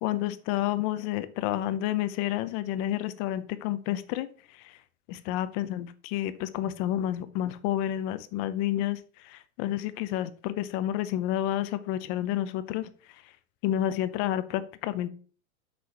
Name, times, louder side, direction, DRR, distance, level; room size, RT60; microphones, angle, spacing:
voice 1, 0.0-4.8 5.1-12.9 13.6-15.1, left 13 dB, 25° left, 13 dB, 0.5 m, -30 dB
8.1 x 4.8 x 5.7 m, 0.42 s
hypercardioid pair, 140°, 41 cm